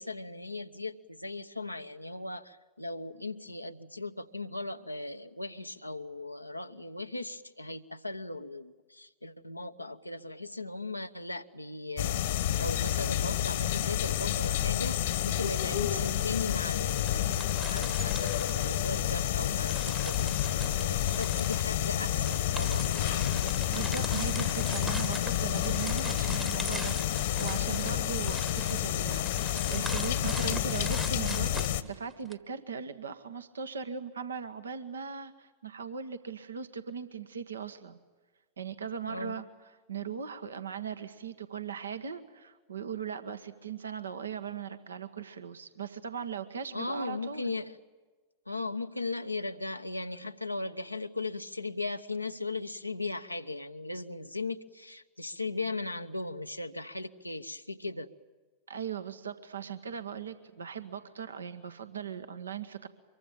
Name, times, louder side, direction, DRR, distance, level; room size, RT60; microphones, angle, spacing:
voice 1, 0.0-12.2 12.6-20.3 20.8-22.9 39.1-39.5 46.7-47.8 48.5-58.1, left 3 dB, 85° left, 7 dB, 1.0 m, -38 dB
sound 1, 12.0-31.8, left 11 dB, 55° left, 1.4 m, -29 dB
sound 2, 17.0-19.2 19.6-32.3, right 1 dB, 5° right, 1.2 m, -42 dB
voice 2, 23.7-38.0 38.6-39.4 39.9-47.6 58.7-62.9, right 7 dB, 70° right, 9 dB, 1.4 m, -39 dB
25.0 x 23.0 x 9.0 m, 1.3 s
figure-of-eight pair, 90°, 0 cm